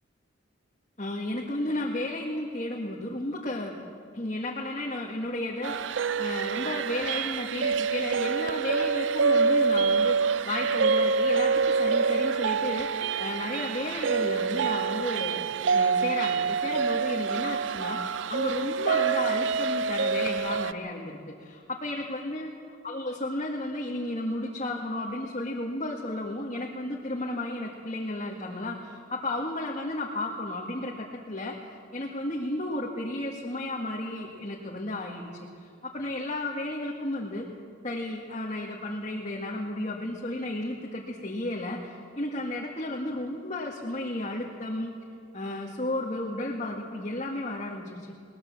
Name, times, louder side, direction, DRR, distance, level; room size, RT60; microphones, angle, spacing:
voice 1, 1.0-3.8 4.1-22.5 22.8-35.3 35.6-37.4 37.8-44.9 45.3-48.1, left 1 dB, 35° left, -3 dB, 1.8 m, -33 dB
sound 1, 5.6-20.7, right 5 dB, 70° right, 0.5 m, -26 dB
20.5 x 20.0 x 7.3 m, 2.2 s
head